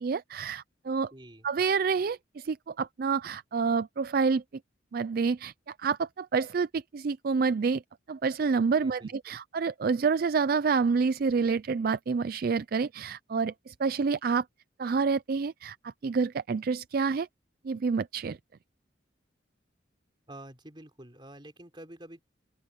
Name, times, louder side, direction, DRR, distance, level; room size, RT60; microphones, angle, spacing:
voice 1, 0.0-1.1 1.4-4.4 4.9-7.8 8.1-14.4 14.8-17.3 17.6-18.4, right 5 dB, 50° right, 0.4 m, -28 dB
voice 2, 1.1-1.5 8.8-9.4 20.3-22.2, right 1 dB, 25° right, 4.1 m, -48 dB
open air
head